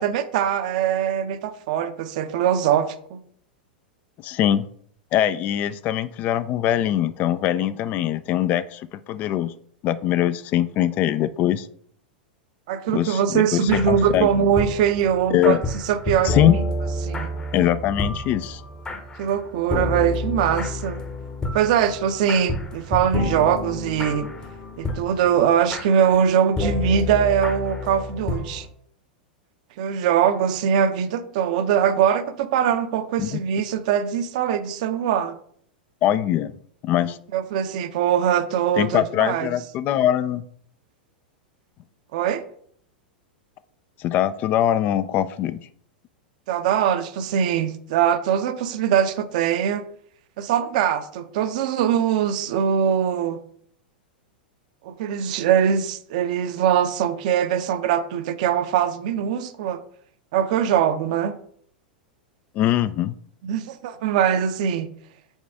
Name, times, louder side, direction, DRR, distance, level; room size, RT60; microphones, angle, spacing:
voice 1, 0.0-3.2 12.7-15.6 15.9-16.6 17.0-17.3 19.2-21.0 21.5-24.3 24.8-28.7 29.8-35.4 37.3-39.5 42.1-42.4 46.5-49.9 50.4-53.4 54.8-59.8 60.3-61.4 63.4-64.9, right 8 dB, 50° right, 0.6 m, -22 dB
voice 2, 4.2-4.7 5.1-9.5 9.8-11.7 12.9-14.3 15.3-15.6 16.2-16.6 17.5-18.6 33.2-33.4 36.0-36.6 36.8-37.2 38.8-40.4 44.0-45.7 62.5-63.1, left 12 dB, 35° left, 0.3 m, -22 dB
sound 1, 13.7-28.7, left 2 dB, 15° left, 0.8 m, -30 dB
7.1 x 4.0 x 3.4 m
figure-of-eight pair, 95°, 5 cm